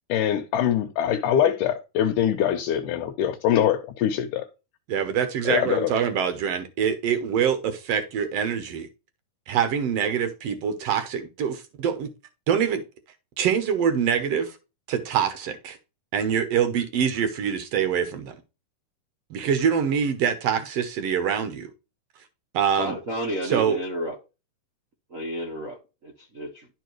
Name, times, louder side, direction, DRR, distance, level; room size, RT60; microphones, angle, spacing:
voice 1, 0.1-4.5 5.5-5.9, left 10 dB, 75° left, 2.2 m, -23 dB
voice 2, 4.9-8.9 9.5-12.1 12.5-12.8 13.4-14.6 14.9-15.8 16.1-18.3 19.3-21.7 22.5-22.9 23.4-23.8, right 7 dB, 70° right, 1.5 m, -25 dB
voice 3, 22.8-24.2 25.1-26.7, right 1 dB, 85° right, 0.7 m, -32 dB
12.0 x 4.6 x 3.1 m
omnidirectional pair, 4.0 m